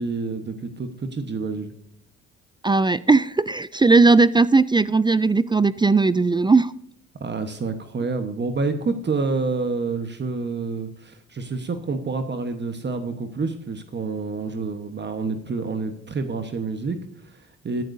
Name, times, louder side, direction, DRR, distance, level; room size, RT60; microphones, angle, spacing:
voice 1, 0.0-1.7 7.2-17.8, right 4 dB, 35° right, 7 dB, 1.2 m, -28 dB
voice 2, 2.6-6.7, right 3 dB, 15° right, 17 dB, 0.3 m, -18 dB
15.0 x 10.5 x 2.7 m, 0.72 s
cardioid pair, 90°, 30 cm